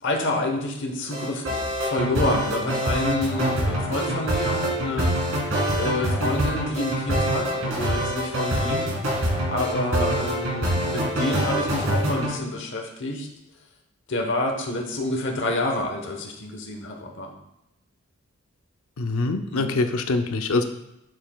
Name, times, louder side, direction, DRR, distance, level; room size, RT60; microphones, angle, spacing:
voice 1, 0.0-5.1 5.7-8.9 9.5-13.3 14.1-17.3 19.5-19.7, left 1 dB, 55° left, 1 dB, 1.0 m, -28 dB
sound 1, 1.1-12.4, equal, 65° right, 1.8 m, -25 dB
voice 2, 19.0-20.6, left 3 dB, 75° left, 7 dB, 0.6 m, -24 dB
7.8 x 6.6 x 2.3 m, 0.85 s
head